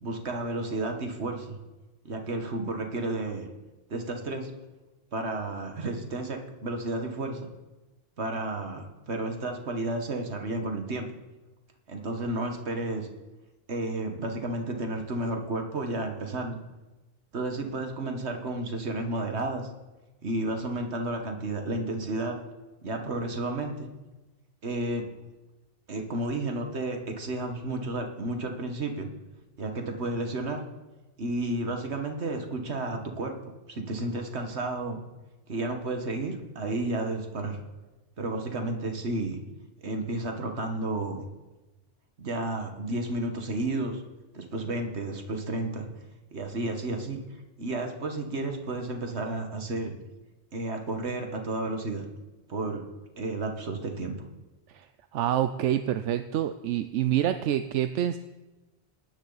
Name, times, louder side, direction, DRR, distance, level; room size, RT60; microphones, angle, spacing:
voice 1, 0.0-1.6 2.1-3.5 3.9-4.5 5.1-7.5 8.2-11.1 11.9-13.1 13.7-16.6 17.3-19.7 20.2-22.4 22.8-23.9 24.6-25.0 25.9-29.1 29.6-30.6 31.2-35.0 35.5-37.6 38.2-39.4 39.8-41.3 42.2-44.0 44.3-45.9 46.3-47.2 47.6-49.9 50.5-52.1 52.5-52.8 53.2-54.1, right 2 dB, 70° right, 4 dB, 1.8 m, -32 dB
voice 2, 55.1-58.2, right 11 dB, 90° right, 10 dB, 0.9 m, -27 dB
19.0 x 10.0 x 4.1 m, 1.1 s
omnidirectional pair, 1.2 m